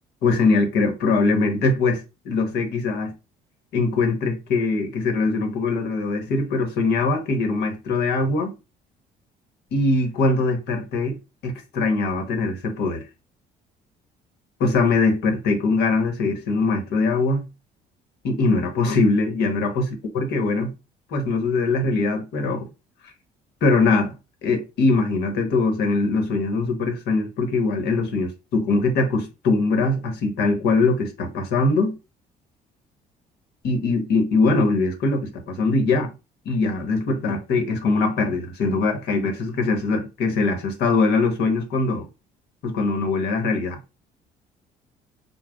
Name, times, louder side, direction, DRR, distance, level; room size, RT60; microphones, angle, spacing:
voice 1, 0.2-3.1 3.7-8.5 9.7-11.2 11.4-13.0 14.6-17.5 18.2-19.9 20.1-20.7 21.1-22.7 23.6-24.2 24.4-32.0 33.6-36.1 36.4-42.1 42.6-43.8, left 3 dB, 75° left, 1.1 m, -22 dB
5.0 x 2.3 x 3.4 m
cardioid pair, 110°, 17 cm